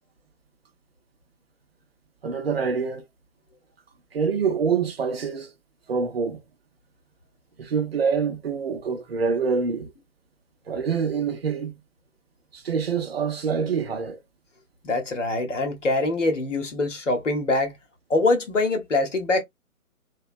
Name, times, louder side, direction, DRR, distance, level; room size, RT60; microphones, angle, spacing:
voice 1, 2.2-3.0 4.1-5.5 5.9-6.4 7.6-9.9 10.7-11.8 12.5-14.2, right 5 dB, 45° right, 0.5 m, -26 dB
voice 2, 14.8-17.7 18.1-19.4, left 2 dB, 55° left, 0.9 m, -24 dB
2.8 x 2.2 x 2.4 m
figure-of-eight pair, 140°, 43 cm